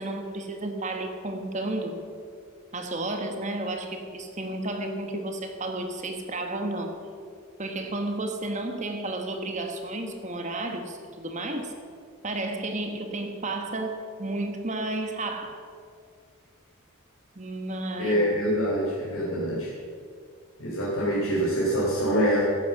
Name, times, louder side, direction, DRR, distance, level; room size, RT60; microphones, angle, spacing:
voice 1, 0.0-2.0 2.7-6.9 7.6-11.7 12.2-15.6 17.3-18.4, right 2 dB, 35° right, 5 dB, 1.5 m, -32 dB
voice 2, 18.0-19.7 20.6-22.4, equal, 75° left, -8 dB, 3.8 m, -25 dB
14.5 x 10.5 x 7.1 m, 2.2 s
head